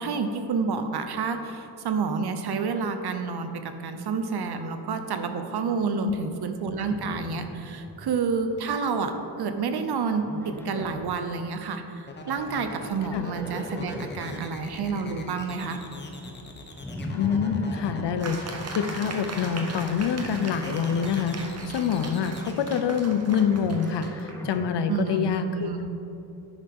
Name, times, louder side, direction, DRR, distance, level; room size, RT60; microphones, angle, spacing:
voice 1, 0.0-9.1 9.4-15.8 24.9-25.9, right 5 dB, 65° right, 7 dB, 0.8 m, -29 dB
Livestock farm animals working animals, 6.8-8.1 8.4-8.9 10.2-11.2 12.8-14.5 16.8-18.2 20.2-21.3 23.1-24.8, left 1 dB, 5° left, 0.5 m, -39 dB
sound 1, 12.1-22.5, left 2 dB, 25° left, 0.9 m, -42 dB
voice 2, 17.1-21.4 21.7-25.7, left 7 dB, 75° left, 9 dB, 0.7 m, -26 dB
sound 2, 18.2-24.6, right 3 dB, 35° right, 0.9 m, -39 dB
10.5 x 9.8 x 3.7 m, 3.0 s
wide cardioid pair, 170°, 42 cm